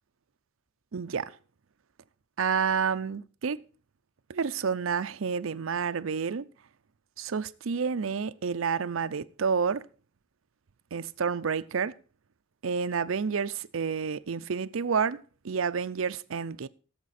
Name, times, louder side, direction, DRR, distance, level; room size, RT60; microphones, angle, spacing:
voice 1, 0.9-1.4 2.4-3.6 4.3-6.5 7.2-9.9 10.9-11.9 12.6-16.7, right 6 dB, 70° right, 0.5 m, -29 dB
17.0 x 7.4 x 4.2 m
head